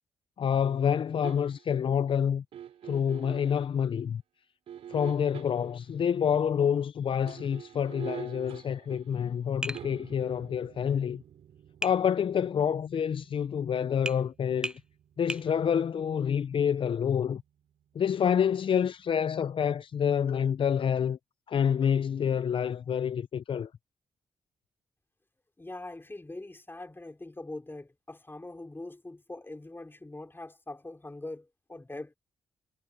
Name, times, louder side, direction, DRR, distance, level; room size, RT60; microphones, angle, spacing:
voice 1, 0.4-2.4 2.8-4.2 4.9-11.2 11.8-14.8 15.2-17.4 17.9-21.2 21.5-23.7, left 8 dB, 55° left, 0.6 m, -27 dB
sound 1, 1.2-1.8 2.5-3.7 4.7-5.9 7.1-18.1 18.4-18.5, right 10 dB, 75° right, 3.4 m, -47 dB
Tap, 9.6-9.9 11.8-12.0 14.1-14.2 14.6-14.8 15.3-15.5, right 1 dB, 10° right, 0.5 m, -34 dB
voice 2, 25.6-32.1, left 2 dB, 20° left, 4.7 m, -42 dB
hypercardioid pair, 40°, 10 cm